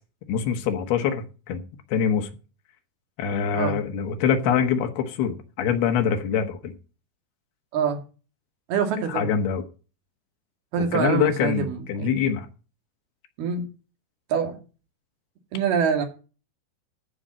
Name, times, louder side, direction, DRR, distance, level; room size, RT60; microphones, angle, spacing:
voice 1, 0.3-1.6 1.9-2.3 3.2-6.7 9.1-9.6 10.9-12.5, left 7 dB, 85° left, 3.4 m, -24 dB
voice 2, 8.7-9.3 10.7-12.3 13.4-13.6 14.3-14.6 15.5-16.1, right 6 dB, 80° right, 4.1 m, -25 dB
14.5 x 5.2 x 7.5 m
omnidirectional pair, 4.4 m